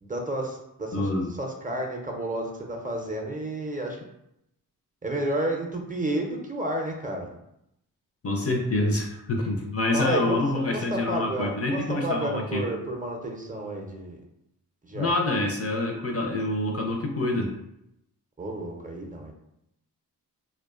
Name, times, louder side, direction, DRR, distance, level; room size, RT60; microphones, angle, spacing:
voice 1, 0.0-1.1 1.4-4.0 5.0-7.3 9.9-14.2 14.8-15.2 18.4-19.3, right 1 dB, 20° right, 1 dB, 0.5 m, -31 dB
voice 2, 0.9-1.3 8.2-12.7 14.9-17.5, left 2 dB, 40° left, 2 dB, 0.5 m, -26 dB
2.5 x 2.1 x 2.4 m, 0.80 s
cardioid pair, 45°, 40 cm